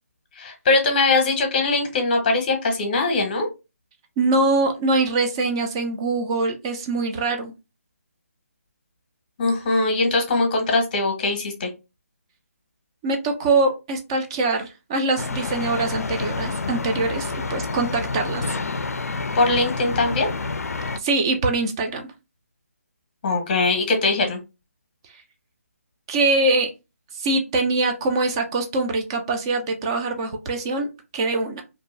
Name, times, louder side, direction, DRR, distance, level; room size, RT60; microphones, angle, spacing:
voice 1, 0.4-3.5 9.4-11.7 19.3-20.3 23.2-24.4, left 3 dB, 35° left, 4 dB, 0.8 m, -21 dB
voice 2, 4.2-7.5 13.0-18.4 21.0-22.0 26.1-26.7 27.2-30.9 31.1-31.6, right 3 dB, 20° right, 4 dB, 0.4 m, -23 dB
sound 1, 15.2-21.0, left 3 dB, 75° left, 0.3 m, -28 dB
2.5 x 2.2 x 3.2 m, 0.26 s
figure-of-eight pair, 155°, 8 cm